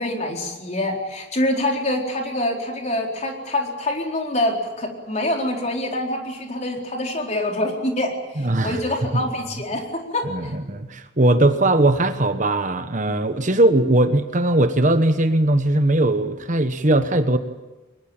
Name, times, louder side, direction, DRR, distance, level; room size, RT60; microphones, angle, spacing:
voice 1, 0.0-10.5, left 1 dB, 35° left, 1 dB, 4.3 m, -25 dB
voice 2, 8.4-8.8 9.1-9.2 10.2-17.4, right 1 dB, 40° right, 9 dB, 1.2 m, -19 dB
23.0 x 21.0 x 9.0 m, 1.1 s
head